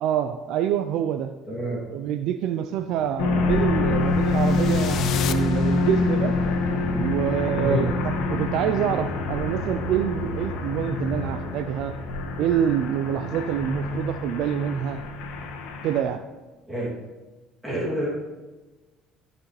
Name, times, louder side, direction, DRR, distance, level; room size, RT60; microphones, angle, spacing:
voice 1, 0.0-1.3 1.9-6.3 6.9-11.9 12.4-15.0 15.8-16.2, right 10 dB, 70° right, 8 dB, 0.4 m, -26 dB
voice 2, 1.5-1.8 7.6-7.9 16.7-17.0 17.6-18.1, right 1 dB, 5° right, -7 dB, 2.6 m, -27 dB
sound 1, 2.8-11.3, left 2 dB, 15° left, 1.8 m, -42 dB
sound 2, 3.2-16.0, left 3 dB, 80° left, 1.4 m, -26 dB
sound 3, 4.2-6.4, left 10 dB, 60° left, 0.6 m, -35 dB
14.0 x 6.0 x 3.2 m, 1.2 s
supercardioid pair, 85°, 0 cm